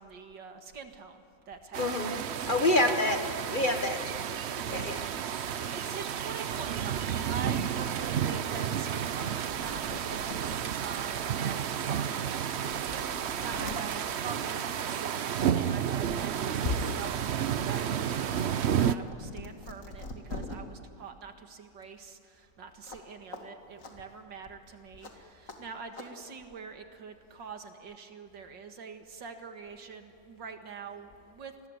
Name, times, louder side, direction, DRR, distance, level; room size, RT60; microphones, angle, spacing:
voice 1, 0.0-2.1 2.6-2.9 4.7-5.1 5.5-31.7, right 5 dB, 90° right, 6 dB, 2.4 m, -45 dB
sound 1, 1.7-18.9, right 9 dB, 60° right, 0.7 m, -31 dB
voice 2, 1.8-4.2 4.7-5.1 5.4-6.0, left 1 dB, 30° left, 6 dB, 1.3 m, -29 dB
sound 2, 9.5-10.6 11.1-11.2 12.1-12.2 12.5-13.8 15.1-15.3 15.7-16.7 17.1-20.6 22.8-23.0 23.3-23.4 23.8-23.9 25.0-25.1 25.5-25.6 25.9-26.1, left 2 dB, 50° left, 2.6 m, -44 dB
28.0 x 20.5 x 8.1 m, 2.5 s
omnidirectional pair, 1.9 m